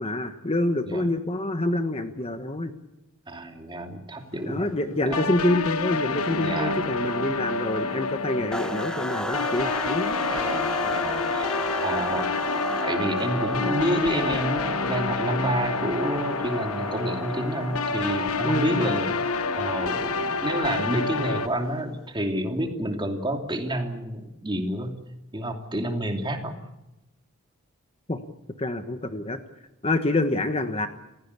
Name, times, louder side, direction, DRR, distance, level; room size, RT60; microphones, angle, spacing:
voice 1, 0.0-2.7 4.4-10.2 18.4-18.8 28.1-28.2 28.6-29.4 29.8-30.9, left 1 dB, 25° left, 8 dB, 1.3 m, -26 dB
voice 2, 3.3-4.7 5.0-5.3 6.4-6.8 10.3-11.5 11.8-12.3 12.8-19.1 19.5-24.9 25.3-26.6, right 1 dB, 20° right, 4 dB, 2.8 m, -29 dB
sound 1, 4.2-21.8, left 1 dB, 65° left, 4.0 m, -48 dB
sound 2, 5.1-21.5, left 4 dB, 80° left, 1.3 m, -28 dB
sound 3, 8.5-21.9, equal, 5° left, 1.0 m, -35 dB
29.5 x 16.0 x 8.3 m, 0.95 s
head